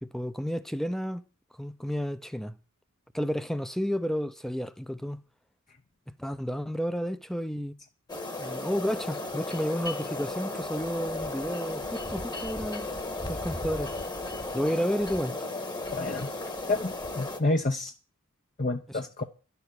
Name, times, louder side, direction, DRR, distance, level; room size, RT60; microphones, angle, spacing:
voice 1, 0.0-1.2 1.6-2.6 3.1-5.2 6.2-7.7 8.4-12.9 13.3-13.9 14.5-15.4 18.9-19.0, equal, ahead, 0.8 m, -31 dB
sound 1, 8.1-17.4, left 2 dB, 20° left, 1.5 m, -35 dB
voice 2, 15.9-16.3 16.7-17.9 18.6-19.2, left 2 dB, 35° left, 1.0 m, -29 dB
12.0 x 7.1 x 9.8 m
head